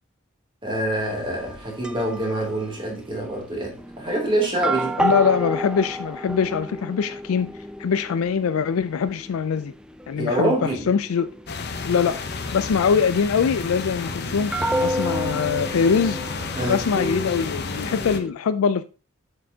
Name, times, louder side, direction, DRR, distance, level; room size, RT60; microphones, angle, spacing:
voice 1, 0.6-5.0 10.1-10.9 16.6-16.8, right 1 dB, 25° right, 2.9 m, -25 dB
sound 1, 0.9-2.9 3.8-18.3, right 1 dB, 5° right, 0.4 m, -32 dB
voice 2, 5.0-7.5 7.8-9.7 10.1-11.3 11.8-12.2 12.5-14.5 14.8-16.2 16.6-18.8, left 6 dB, 80° left, 0.4 m, -23 dB
sound 2, 11.5-18.2, left 4 dB, 50° left, 0.8 m, -31 dB
7.5 x 6.6 x 2.8 m
head